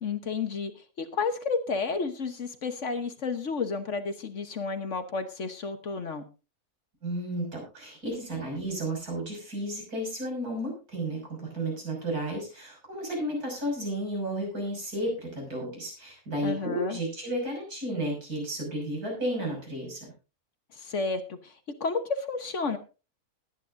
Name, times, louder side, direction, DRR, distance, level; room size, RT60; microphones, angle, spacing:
voice 1, 0.0-6.2 16.4-17.0 20.7-21.5 21.8-22.8, left 4 dB, 55° left, 9 dB, 1.4 m, -31 dB
voice 2, 7.0-20.1, right 1 dB, 75° right, -1 dB, 6.9 m, -33 dB
20.0 x 9.8 x 2.6 m, 0.32 s
omnidirectional pair, 1.6 m